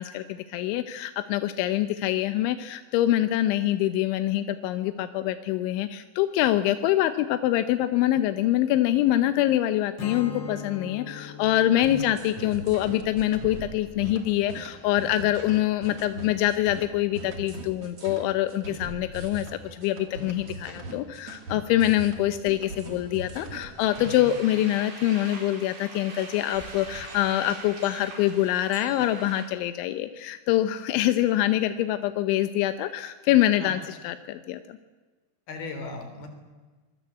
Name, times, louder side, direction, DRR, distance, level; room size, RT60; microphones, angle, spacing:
voice 1, 0.0-34.8, left 13 dB, 90° left, 10 dB, 3.3 m, -25 dB
Strum, 10.0-15.3, left 5 dB, 40° left, 1.9 m, -42 dB
sound 1, 11.8-24.1, right 2 dB, 35° right, 3.1 m, -40 dB
sound 2, 23.9-29.4, right 3 dB, 75° right, 6.8 m, -43 dB
voice 2, 35.5-36.3, left 3 dB, 55° left, 6 dB, 5.5 m, -37 dB
25.5 x 22.5 x 8.3 m, 1.3 s
omnidirectional pair, 5.3 m